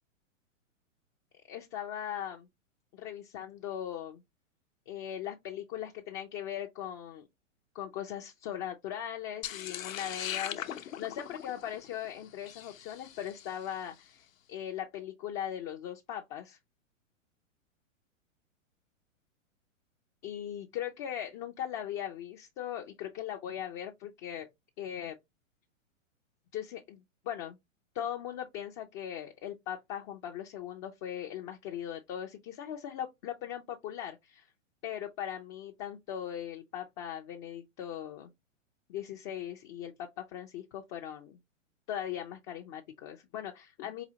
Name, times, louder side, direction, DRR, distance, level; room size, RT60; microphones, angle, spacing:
voice 1, 1.5-2.5 2.9-4.2 4.9-7.3 7.7-16.6 20.2-24.5 24.8-25.2 26.5-27.6 27.9-34.5 34.8-38.3 38.9-41.4 41.9-44.0, left 10 dB, 25° left, 0.4 m, -39 dB
sound 1, 9.4-13.7, left 10 dB, 80° left, 0.8 m, -40 dB
4.9 x 2.7 x 2.7 m
hypercardioid pair, 125°, 39 cm